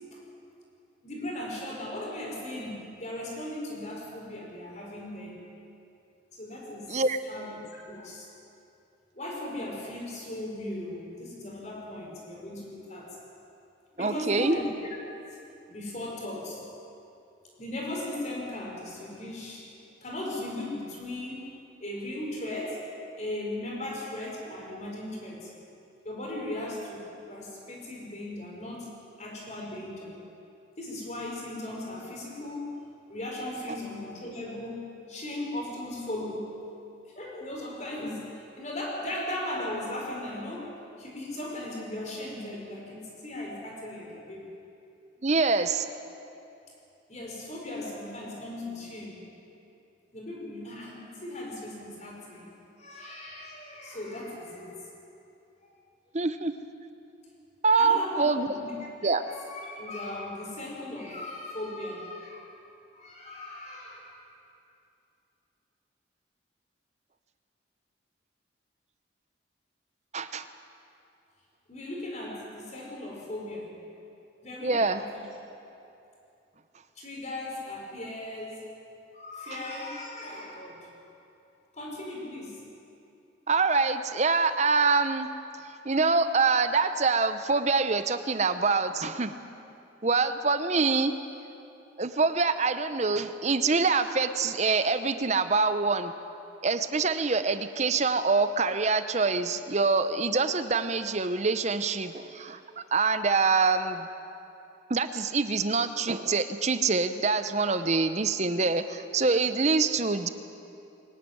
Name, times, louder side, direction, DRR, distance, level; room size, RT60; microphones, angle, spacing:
voice 1, 1.0-5.4 6.3-6.9 7.3-8.3 9.1-13.2 14.0-14.7 15.3-15.4 15.7-16.6 17.6-19.7 20.0-21.5 21.8-22.8 23.1-25.5 26.0-28.9 29.2-30.1 30.8-36.5 37.1-44.4 47.1-49.2 50.1-52.5 52.8-54.9 55.6-55.8 57.8-58.3 58.6-58.8 59.2-62.5 62.9-64.1 71.7-73.8 74.4-75.2 75.6-75.7 76.9-78.7 79.1-80.9 81.7-82.6, left 1 dB, 35° left, -2 dB, 4.9 m, -37 dB
voice 2, 14.0-14.6 45.2-45.9 56.1-56.5 57.6-58.5 59.0-59.2 70.1-70.5 74.6-75.0 83.5-85.3 85.8-89.3 90.0-91.1 92.0-96.1 96.6-104.1 104.9-110.3, right 4 dB, 35° right, 11 dB, 0.8 m, -25 dB
23.0 x 12.0 x 9.6 m, 2.7 s
head